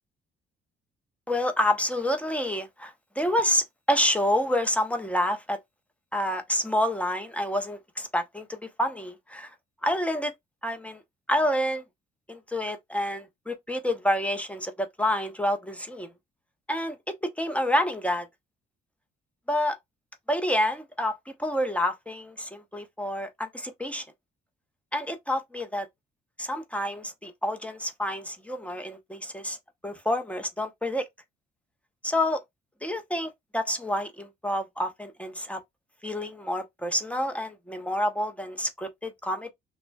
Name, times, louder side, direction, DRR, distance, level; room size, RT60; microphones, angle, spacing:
voice 1, 1.3-5.6 6.1-9.5 9.8-10.3 10.6-11.0 11.3-11.8 12.3-16.1 16.7-17.0 17.2-18.3 19.5-19.8 20.3-24.0 24.9-25.9 26.4-29.6 29.8-31.1 32.0-32.4 32.8-35.6 36.0-39.5, left 1 dB, 5° left, 0.7 m, -28 dB
5.9 x 2.1 x 2.3 m
cardioid pair, 90°, 20 cm